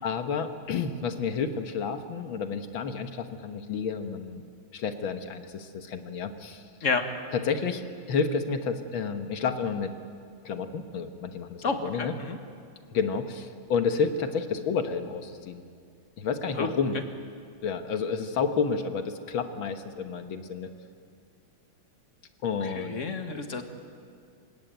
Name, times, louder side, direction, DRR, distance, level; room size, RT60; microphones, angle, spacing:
voice 1, 0.0-4.4 4.7-6.7 7.3-9.9 10.4-12.1 12.9-15.6 16.2-17.0 17.6-20.7 22.4-23.0, left 5 dB, 90° left, 7 dB, 2.1 m, -30 dB
voice 2, 11.6-12.4 16.6-16.7 22.6-23.6, left 4 dB, 40° left, 6 dB, 2.0 m, -30 dB
28.0 x 17.0 x 9.2 m, 2.4 s
omnidirectional pair, 2.1 m